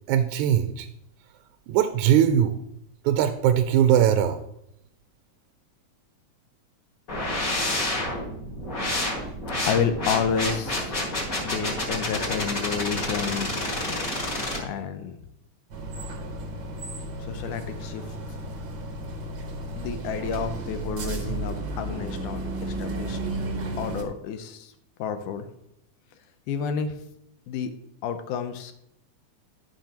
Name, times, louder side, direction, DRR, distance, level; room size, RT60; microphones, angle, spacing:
voice 1, 0.1-0.9 1.7-2.6 3.1-4.4, right 10 dB, 80° right, 8 dB, 1.8 m, -20 dB
sound 1, 7.1-14.6, left 1 dB, 35° left, 1.7 m, -29 dB
voice 2, 9.7-10.9 11.4-13.8 14.6-15.2 17.3-18.0 19.8-23.2 23.8-24.7 25.0-25.5 26.5-26.9 27.5-27.7 28.0-28.7, left 7 dB, 80° left, 9 dB, 2.2 m, -30 dB
sound 2, 15.7-24.0, right 2 dB, 60° right, 1.1 m, -33 dB
13.0 x 5.8 x 2.9 m, 0.79 s
omnidirectional pair, 3.7 m